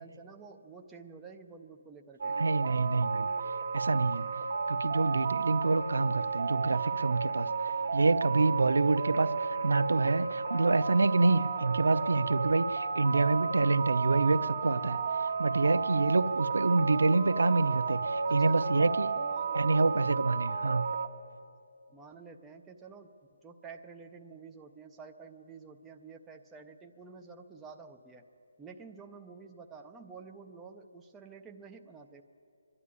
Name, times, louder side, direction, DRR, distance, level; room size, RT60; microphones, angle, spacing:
voice 1, 0.0-2.4 18.3-19.9 21.9-23.1 23.4-28.2 28.6-32.2, right 5 dB, 5° right, 3 dB, 0.4 m, -50 dB
sound 1, 2.2-21.1, right 5 dB, 30° right, 0.9 m, -32 dB
voice 2, 2.3-3.3 3.7-4.3 4.7-7.5 7.9-15.0 15.4-19.1 19.5-20.9, right 3 dB, 90° right, 13 dB, 0.7 m, -27 dB
24.0 x 11.0 x 9.8 m, 2.6 s
hypercardioid pair, 180°, 0 cm